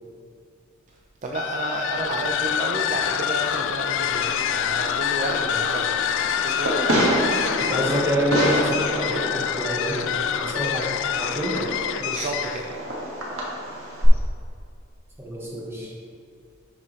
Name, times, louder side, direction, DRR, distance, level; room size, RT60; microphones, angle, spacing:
voice 1, 1.2-7.3 12.0-12.7, right 2 dB, 35° right, -1 dB, 0.5 m, -31 dB
sound 1, 1.3-12.7, left 9 dB, 65° left, 0.3 m, -26 dB
Fireworks, 4.1-14.1, equal, 90° right, 1.6 m, -29 dB
voice 2, 7.6-10.1 10.3-10.8 11.2-11.6 15.2-15.9, right 1 dB, 10° right, -3 dB, 1.3 m, -27 dB
11.5 x 4.6 x 3.1 m, 2.4 s
head